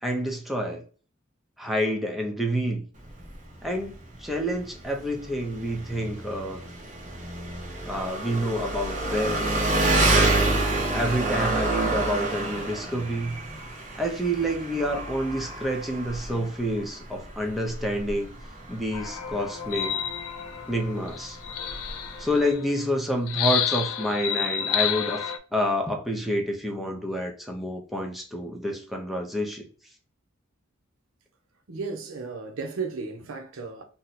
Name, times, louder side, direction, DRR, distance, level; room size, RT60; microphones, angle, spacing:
voice 1, 0.0-0.8 1.6-2.8 3.6-3.9 4.2-6.6 7.8-9.6 10.9-13.4 14.0-18.3 18.7-20.0 20.7-21.4 22.2-25.2 25.5-29.7, equal, ahead, 0.5 m, -28 dB
Engine, 3.0-22.5, right 2 dB, 40° right, 0.7 m, -29 dB
sound 1, 18.9-22.7 23.3-25.4, left 9 dB, 80° left, 0.4 m, -30 dB
voice 2, 31.7-33.8, right 4 dB, 80° right, 0.6 m, -34 dB
2.7 x 2.1 x 4.0 m
head